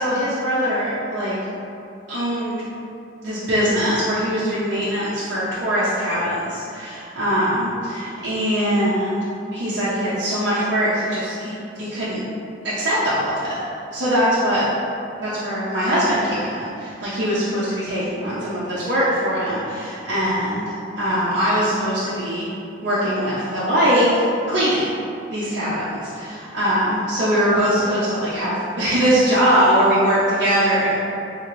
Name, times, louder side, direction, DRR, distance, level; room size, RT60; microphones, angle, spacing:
voice 1, 0.0-1.4 2.1-2.6 3.2-9.2 9.5-12.2 12.6-13.6 13.9-14.6 15.2-22.5 22.8-24.8 25.3-30.9, equal, 65° right, -11 dB, 0.6 m, -21 dB
2.9 x 2.8 x 2.9 m, 2.6 s
head